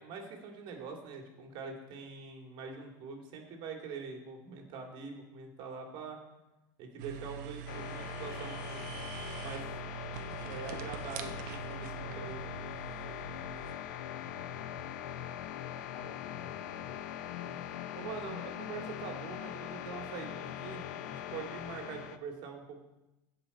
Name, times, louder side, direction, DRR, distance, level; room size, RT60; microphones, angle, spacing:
voice 1, 0.0-6.2 6.8-9.8 10.4-12.5 17.4-17.6 17.9-22.8, right 5 dB, 55° right, 2 dB, 2.5 m, -44 dB
sound 1, 7.0-13.7, right 8 dB, 75° right, 0.9 m, -43 dB
sound 2, 7.7-22.2, left 11 dB, 80° left, 0.6 m, -42 dB
voice 2, 15.7-17.0, left 2 dB, 35° left, 0 dB, 2.6 m, -55 dB
16.0 x 5.6 x 4.2 m, 0.97 s
supercardioid pair, 110°, 10 cm